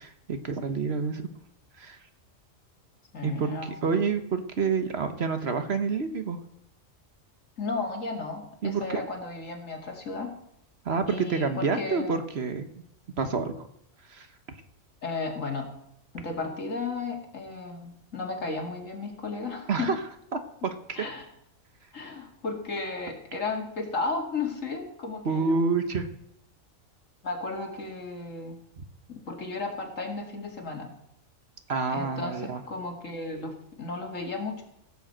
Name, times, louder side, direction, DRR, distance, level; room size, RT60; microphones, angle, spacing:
voice 1, 0.3-1.2 1.8-2.0 3.2-6.4 8.6-9.0 10.8-12.7 13.2-13.7 14.1-14.3 19.7-20.0 20.3-21.0 25.2-26.1 28.8-28.9 31.7-32.6, right 4 dB, 55° right, 8 dB, 1.3 m, -28 dB
voice 2, 3.1-4.0 7.6-10.3 11.1-12.2 15.0-15.7 16.1-19.9 21.0-21.2 21.9-25.8 27.2-28.6 29.1-30.9 31.9-34.6, left 3 dB, 70° left, 2 dB, 2.5 m, -34 dB
16.0 x 6.4 x 7.8 m, 0.74 s
omnidirectional pair, 1.4 m